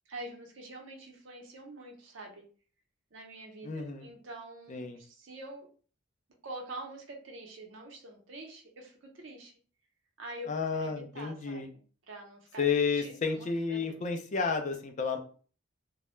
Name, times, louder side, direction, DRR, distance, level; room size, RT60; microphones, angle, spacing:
voice 1, 0.1-2.4 3.1-5.7 6.4-9.5 10.2-11.7 12.1-12.6 13.0-14.0, right 1 dB, 70° right, 1 dB, 0.7 m, -46 dB
voice 2, 3.6-4.1 4.7-5.0 10.5-11.7 12.6-15.2, left 5 dB, 40° left, 5 dB, 0.4 m, -31 dB
2.2 x 2.0 x 2.9 m, 0.41 s
head